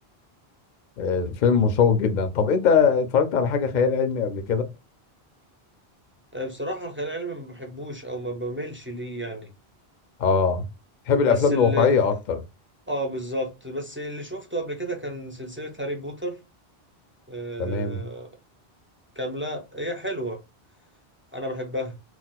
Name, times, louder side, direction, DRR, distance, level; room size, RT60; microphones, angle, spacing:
voice 1, 1.0-4.7 10.2-10.7 11.1-12.4 17.6-18.1, left 5 dB, 55° left, 0.6 m, -21 dB
voice 2, 6.3-9.5 11.2-12.0 12.9-16.4 17.3-18.3 19.2-20.4 21.3-22.0, equal, 20° right, 0.3 m, -32 dB
2.3 x 2.2 x 3.9 m
omnidirectional pair, 1.1 m